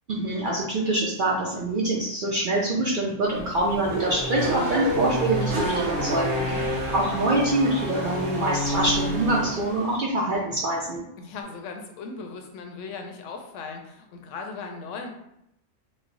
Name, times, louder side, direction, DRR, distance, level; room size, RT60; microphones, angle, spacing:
voice 1, 0.1-6.4 6.9-11.0, right 1 dB, 85° right, -4 dB, 0.4 m, -25 dB
sound 1, 3.2-9.6 9.9-10.4 10.9-11.0 11.3-11.4, left 1 dB, 25° left, 0.7 m, -43 dB
Race car auto racing / Accelerating revving vroom, 3.3-10.0, equal, 45° right, 0.9 m, -29 dB
voice 2, 6.3-6.7 11.2-15.1, left 4 dB, 70° left, 3 dB, 0.9 m, -38 dB
3.1 x 2.0 x 3.8 m, 0.81 s
omnidirectional pair, 1.5 m